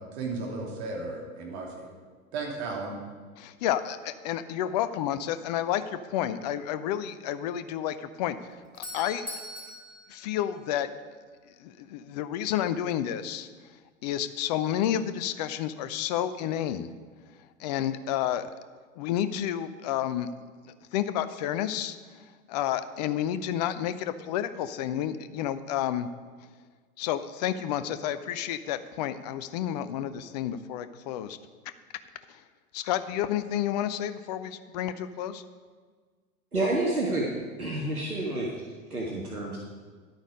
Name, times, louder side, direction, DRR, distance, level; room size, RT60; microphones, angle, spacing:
voice 1, 0.0-1.9 2.3-3.0, right 3 dB, 45° right, 0 dB, 2.7 m, -35 dB
voice 2, 3.4-8.4 8.8-9.2 10.1-10.9 11.6-13.5 14.0-16.9 17.6-18.5 19.0-20.3 20.6-22.0 22.5-26.1 27.0-31.4 32.3-32.4 32.7-35.4, left 11 dB, 30° left, 12 dB, 0.5 m, -30 dB
Doorbell, 8.4-11.2, left 1 dB, 90° left, 3.1 m, -42 dB
voice 3, 36.5-38.5 38.9-39.6, right 2 dB, 85° right, -3 dB, 1.7 m, -29 dB
11.0 x 8.9 x 5.2 m, 1.5 s
figure-of-eight pair, 95°, 43 cm